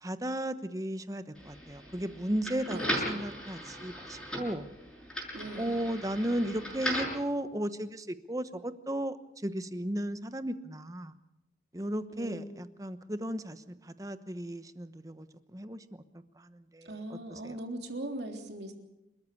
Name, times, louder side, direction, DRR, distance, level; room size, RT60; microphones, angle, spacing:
voice 1, 0.0-4.7 5.6-11.1 11.7-16.0 16.4-17.6, right 1 dB, 20° right, 11 dB, 1.0 m, -35 dB
sound 1, 1.4-7.2, equal, 5° left, 6.6 m, -37 dB
voice 2, 2.7-3.4 5.3-5.8 12.1-12.4 16.8-18.7, right 1 dB, 65° right, 3 dB, 3.5 m, -40 dB
28.5 x 14.0 x 8.5 m, 0.92 s
head